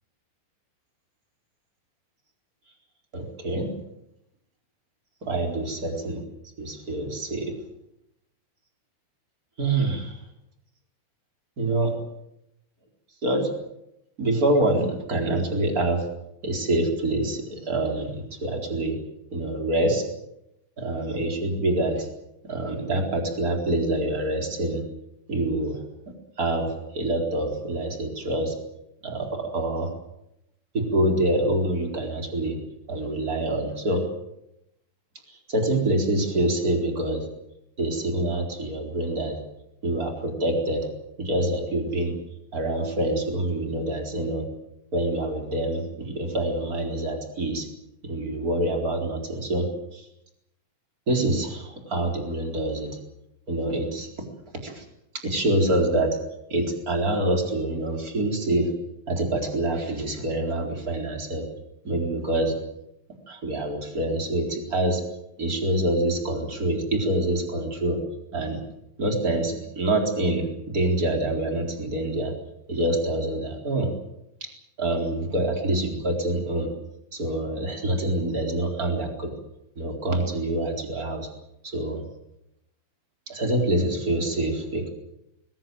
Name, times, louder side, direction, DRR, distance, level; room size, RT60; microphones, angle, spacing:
voice 1, 3.1-3.7 5.2-6.2 6.6-7.5 9.6-10.2 11.6-11.9 13.2-13.5 14.2-16.0 16.4-19.0 19.3-20.0 20.8-22.1 22.4-24.8 25.3-25.8 26.4-28.5 29.0-29.9 30.7-32.6 32.9-34.1 35.5-37.3 37.8-39.4 39.8-40.9 41.2-42.1 42.5-44.4 44.9-47.7 48.0-50.1 51.1-52.9 53.5-54.1 54.6-54.8 55.2-56.2 56.5-58.7 59.1-61.4 61.8-62.5 63.3-65.0 65.4-68.0 68.3-68.6 69.0-72.3 72.7-73.9 74.4-74.5 74.8-76.7 77.1-79.3 79.8-81.3 81.6-82.0 83.3-84.9, right 1 dB, 20° right, 3 dB, 3.9 m, -26 dB
21.5 x 21.5 x 7.8 m, 0.82 s
omnidirectional pair, 5.7 m